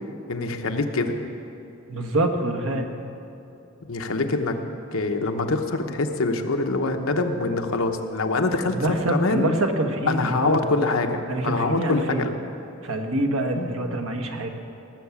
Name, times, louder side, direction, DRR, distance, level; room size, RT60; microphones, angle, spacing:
voice 1, 0.3-1.1 3.9-4.6 4.9-9.5 10.1-12.3 13.6-13.7, left 3 dB, 70° left, 5 dB, 1.0 m, -24 dB
voice 2, 1.9-2.8 8.7-10.7 11.3-12.3 12.8-14.6, right 1 dB, 70° right, 4 dB, 1.3 m, -25 dB
18.0 x 7.4 x 7.1 m, 2.7 s
head